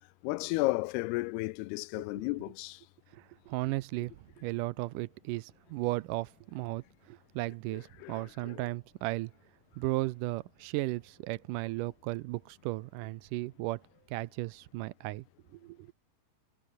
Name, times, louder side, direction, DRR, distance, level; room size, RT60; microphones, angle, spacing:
voice 1, 0.2-2.8 8.0-8.6, left 22 dB, 90° left, 2.6 m, -33 dB
voice 2, 3.1-4.1 4.4-9.3 9.8-13.8 14.1-15.3 15.5-15.9, right 19 dB, 85° right, 1.8 m, -35 dB
omnidirectional pair, 4.5 m